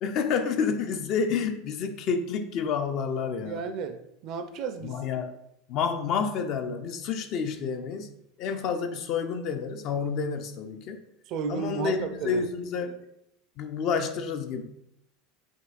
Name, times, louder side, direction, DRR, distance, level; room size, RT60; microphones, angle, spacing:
voice 1, 0.0-3.6 4.8-5.4 5.7-8.1 8.4-11.0 11.5-13.0 13.6-14.7, left 6 dB, 45° left, 7 dB, 0.4 m, -29 dB
voice 2, 3.4-5.0 11.3-12.4, right 6 dB, 50° right, 8 dB, 0.4 m, -33 dB
5.2 x 2.7 x 2.4 m, 0.77 s
figure-of-eight pair, 75°, 0 cm